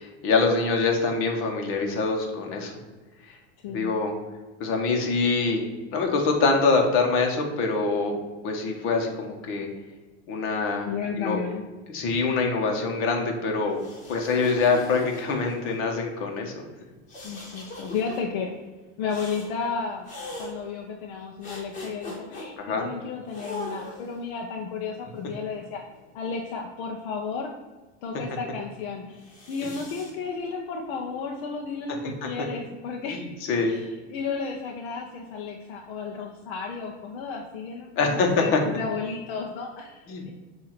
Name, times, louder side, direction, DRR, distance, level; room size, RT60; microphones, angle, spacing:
voice 1, 0.0-2.7 3.7-4.1 4.6-5.6 5.9-8.2 8.4-9.7 10.3-10.9 11.2-11.4 11.9-13.8 14.1-16.6 22.6-22.9 29.6-29.7 33.1-33.8 38.0-38.6 40.1-40.3, left 4 dB, 40° left, 2 dB, 1.3 m, -24 dB
voice 2, 10.9-11.6 17.2-18.5 19.0-20.1 20.4-25.8 26.1-27.5 28.0-33.2 33.7-40.3, left 5 dB, 60° left, 0 dB, 0.8 m, -33 dB
sound 1, 13.7-15.7 17.1-18.2 19.1-19.5 20.1-20.5 21.4-22.5 23.3-24.2 25.0-26.1 29.2-30.1, left 1 dB, 25° left, 1.7 m, -40 dB
7.5 x 2.8 x 5.9 m, 1.3 s
supercardioid pair, 155°, 33 cm